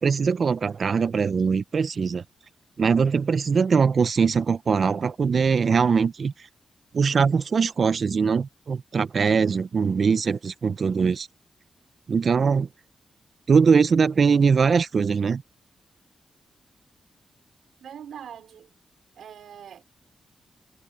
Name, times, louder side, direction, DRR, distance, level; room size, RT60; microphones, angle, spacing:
voice 1, 0.0-2.2 2.8-6.3 6.9-11.3 12.1-12.7 13.5-15.4, right 5 dB, 60° right, 0.9 m, -21 dB
voice 2, 17.8-18.7 19.2-19.8, right 8 dB, 80° right, 3.9 m, -42 dB
supercardioid pair, 45°, 0 cm